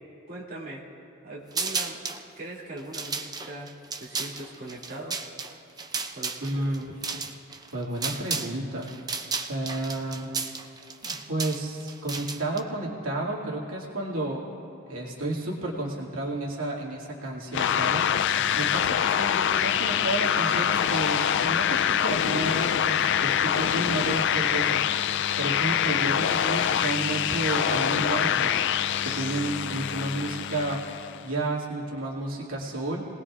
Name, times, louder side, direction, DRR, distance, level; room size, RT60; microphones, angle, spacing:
voice 1, 0.3-0.8 1.2-2.0 2.4-5.2 6.1-7.2 18.4-18.6, right 1 dB, 45° right, -4 dB, 2.5 m, -40 dB
sound 1, 1.5-2.2 2.8-8.6 8.8-12.6, right 4 dB, 20° right, 0.6 m, -33 dB
voice 2, 6.4-7.0 7.7-8.9 9.5-10.3 11.0-14.4 14.9-18.1 18.5-28.6 29.0-30.8 31.2-33.1, right 2 dB, 80° right, -3 dB, 2.3 m, -31 dB
sound 2, 17.5-31.2, left 9 dB, 55° left, 0.4 m, -25 dB
29.0 x 19.5 x 2.5 m, 2.7 s
head